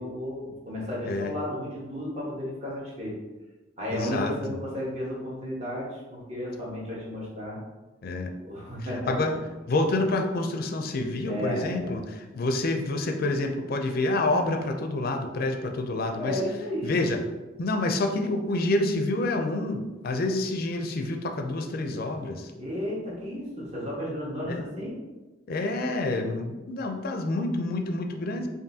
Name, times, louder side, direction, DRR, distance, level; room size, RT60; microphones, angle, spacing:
voice 1, 0.0-3.1 3.8-7.6 8.4-9.3 11.3-11.9 16.1-16.9 22.6-24.9, left 1 dB, 35° right, -5 dB, 1.2 m, -33 dB
voice 2, 3.9-4.3 8.0-8.3 8.9-9.4 9.7-16.4 16.8-17.2 17.6-22.5 24.5-24.6 25.5-28.5, left 2 dB, 55° left, 5 dB, 0.4 m, -28 dB
5.2 x 2.6 x 2.7 m, 1.2 s
head